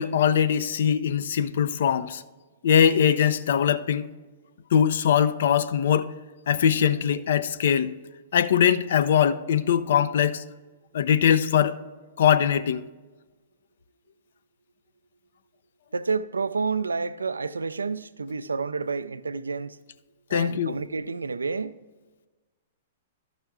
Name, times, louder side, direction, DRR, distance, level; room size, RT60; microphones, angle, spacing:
voice 1, 0.0-2.2 2.6-4.1 4.7-6.1 6.5-7.9 8.3-10.4 10.9-11.8 12.2-12.8 20.3-20.8, left 8 dB, 65° left, 0.5 m, -21 dB
voice 2, 15.9-19.8 20.3-21.8, right 4 dB, 85° right, 0.4 m, -29 dB
13.0 x 5.7 x 3.6 m
hypercardioid pair, 110°, 0 cm